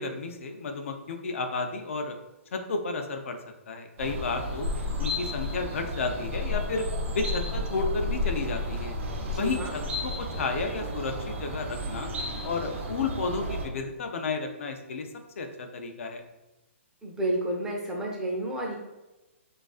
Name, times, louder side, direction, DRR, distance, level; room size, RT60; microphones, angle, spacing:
voice 1, 0.0-2.2 2.5-3.4 3.7-4.7 5.0-6.8 7.1-9.0 9.4-12.1 12.4-15.1 15.4-16.2, left 4 dB, 70° left, 5 dB, 0.4 m, -32 dB
sound 1, 4.0-13.7, left 1 dB, 60° right, 0.6 m, -32 dB
voice 2, 9.2-9.8 17.0-18.8, right 1 dB, 10° right, -2 dB, 0.5 m, -31 dB
2.4 x 2.3 x 2.3 m, 1.0 s
hypercardioid pair, 135°, 7 cm